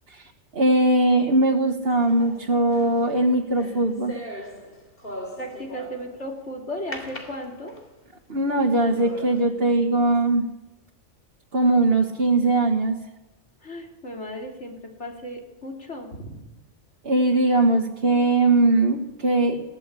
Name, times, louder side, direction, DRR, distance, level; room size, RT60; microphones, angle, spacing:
voice 1, 0.1-4.1 8.3-10.4 11.5-13.0 17.0-19.6, right 2 dB, 55° right, 2 dB, 1.7 m, -20 dB
sound 1, 1.9-6.3 6.9-8.0 8.5-8.6 9.0-9.4, left 1 dB, 50° left, 3.5 m, -40 dB
voice 2, 5.4-7.7 13.6-16.4, equal, 70° left, 2 dB, 3.7 m, -35 dB
21.5 x 16.5 x 8.3 m, 1.0 s
omnidirectional pair, 1.2 m